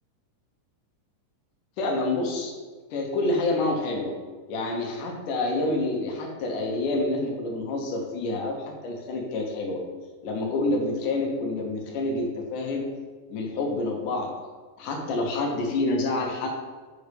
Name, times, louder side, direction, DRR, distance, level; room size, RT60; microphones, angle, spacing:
voice 1, 1.8-2.5 2.9-4.1 4.5-9.8 10.2-12.8 13.3-14.3 14.8-16.5, left 2 dB, 70° left, 0 dB, 2.5 m, -27 dB
7.8 x 6.6 x 3.4 m, 1.4 s
omnidirectional pair, 4.1 m